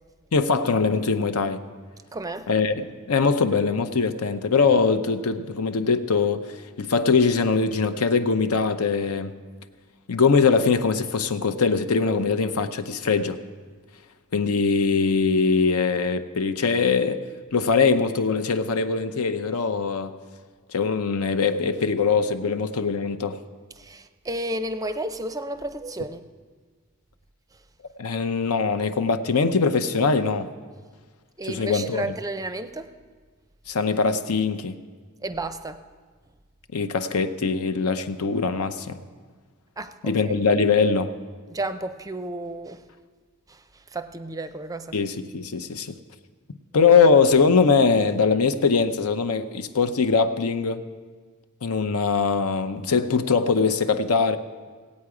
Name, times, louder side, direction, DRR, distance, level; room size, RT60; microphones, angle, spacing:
voice 1, 0.3-1.6 2.5-6.5 6.8-9.3 10.1-13.4 14.3-17.2 17.5-20.1 20.7-23.4 28.0-30.5 31.5-32.0 33.7-34.8 36.7-39.0 40.0-41.1 44.9-46.0 46.7-50.8 51.6-54.4, left 5 dB, 80° left, 10 dB, 0.7 m, -22 dB
voice 2, 2.1-2.5 23.8-26.2 31.4-32.9 35.2-35.8 39.8-40.2 41.5-42.9 43.5-45.0, right 2 dB, 15° right, 10 dB, 0.5 m, -32 dB
17.5 x 8.6 x 4.9 m, 1.5 s
head